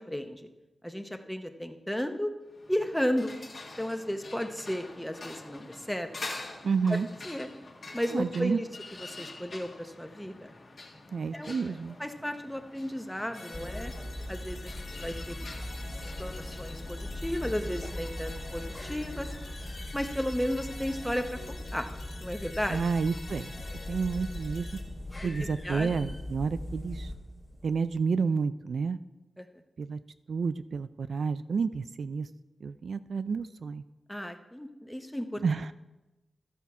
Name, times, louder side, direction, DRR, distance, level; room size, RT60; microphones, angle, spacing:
voice 1, 0.1-0.4 0.8-2.3 2.7-3.3 3.8-6.1 7.3-7.5 7.9-8.6 9.0-10.5 11.3-11.5 12.0-13.9 14.3-15.4 16.2-19.3 19.9-21.9 22.2-22.8 25.4-25.9 29.4-29.5 34.1-35.4, equal, 5° left, 7 dB, 0.7 m, -34 dB
sound 1, 2.5-19.9, left 2 dB, 45° left, 1.4 m, -47 dB
voice 2, 6.6-7.1 8.1-8.6 11.1-12.0 22.7-24.8 25.2-27.1 27.6-29.0 29.8-30.0 30.3-32.3 32.6-33.8 35.4-35.7, right 5 dB, 65° right, 12 dB, 0.3 m, -30 dB
sound 2, 13.3-24.8, left 3 dB, 60° left, 1.4 m, -47 dB
sound 3, 13.5-27.9, left 1 dB, 20° left, 1.5 m, -40 dB
13.5 x 5.7 x 4.7 m, 1.0 s
wide cardioid pair, 155°, 0 cm